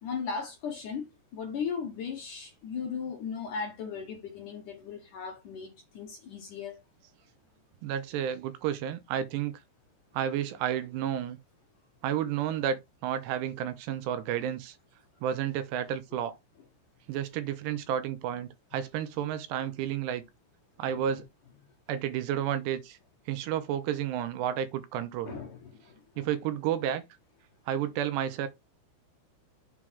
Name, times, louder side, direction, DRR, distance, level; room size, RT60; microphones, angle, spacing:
voice 1, 0.0-6.8 16.1-16.2 20.8-21.0 25.3-26.3, left 6 dB, 65° left, 2.1 m, -37 dB
voice 2, 7.8-9.5 10.1-11.4 12.0-14.7 15.2-16.3 17.1-20.2 20.8-21.3 21.9-23.0 23.3-25.4 26.2-27.0 27.7-28.5, right 10 dB, 80° right, 2.7 m, -31 dB
7.5 x 3.9 x 4.6 m
omnidirectional pair, 5.3 m